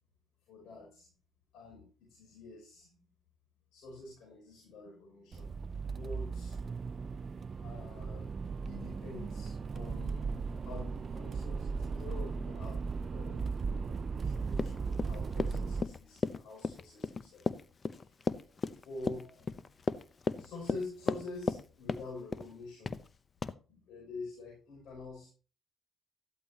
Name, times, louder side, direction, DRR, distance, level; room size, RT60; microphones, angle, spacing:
voice 1, 0.5-1.1 1.5-3.0 3.7-5.5 5.8-6.6 7.6-8.3 8.6-10.3 10.6-17.5 17.8-19.5 20.4-23.0 23.7-25.3, left 3 dB, 80° left, -3 dB, 6.4 m, -47 dB
Accelerating revving vroom, 5.3-15.8, right 4 dB, 40° right, 0.5 m, -37 dB
Run, 14.5-21.6 21.9-22.5 22.9-23.1 23.4-23.5, left 4 dB, 40° left, 0.7 m, -34 dB
13.5 x 12.5 x 2.9 m, 0.36 s
cardioid pair, 90°, 0 cm